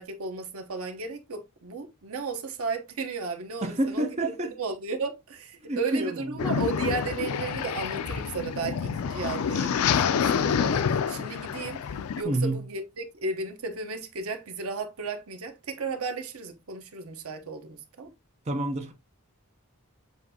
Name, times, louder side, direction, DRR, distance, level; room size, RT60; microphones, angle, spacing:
voice 1, 0.0-18.1, right 4 dB, 75° right, 0.8 m, -34 dB
voice 2, 3.6-4.5 5.6-6.6 12.2-12.6 18.5-18.9, right 1 dB, 30° right, 0.5 m, -29 dB
sound 1, 6.4-12.2, left 7 dB, 75° left, 0.4 m, -27 dB
7.1 x 2.6 x 2.7 m
head